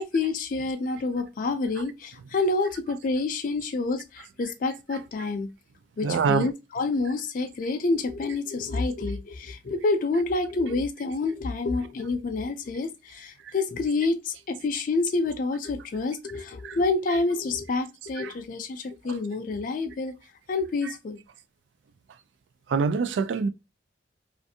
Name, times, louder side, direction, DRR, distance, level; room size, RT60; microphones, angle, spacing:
voice 1, 0.0-5.5 6.0-20.1 20.5-21.2, left 3 dB, 50° left, 0.4 m, -28 dB
voice 2, 6.0-6.5 16.6-16.8 18.2-18.3 20.8-20.9 22.7-23.5, right 5 dB, 90° right, 0.3 m, -25 dB
2.5 x 2.4 x 2.7 m
head